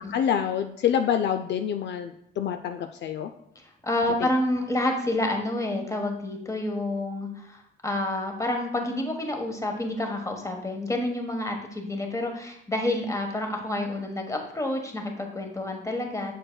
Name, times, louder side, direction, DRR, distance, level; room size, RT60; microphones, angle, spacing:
voice 1, 0.0-3.3, left 9 dB, 60° left, 8 dB, 0.4 m, -27 dB
voice 2, 3.8-16.4, left 1 dB, 15° left, 3 dB, 1.2 m, -29 dB
7.6 x 6.3 x 2.2 m, 0.74 s
cardioid pair, 90°, 20 cm